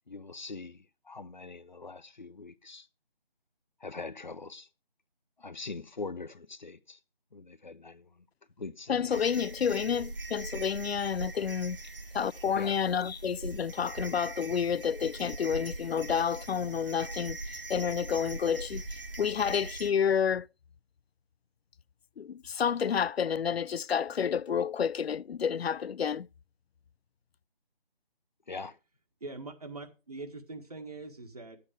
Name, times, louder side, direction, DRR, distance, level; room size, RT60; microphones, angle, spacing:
voice 1, 0.1-2.9 3.8-4.7 5.4-7.0 7.3-8.2 8.6-9.3 12.5-12.8 28.5-28.8, left 3 dB, 50° left, 0.7 m, -42 dB
voice 2, 8.9-11.8 12.1-17.4 17.7-18.8 19.2-20.5 22.2-26.3, left 7 dB, 85° left, 0.5 m, -29 dB
sound 1, 9.1-19.9, right 2 dB, 65° right, 1.4 m, -41 dB
voice 3, 29.2-31.6, right 3 dB, 40° right, 1.6 m, -43 dB
11.0 x 8.6 x 4.9 m
figure-of-eight pair, 170°, 30 cm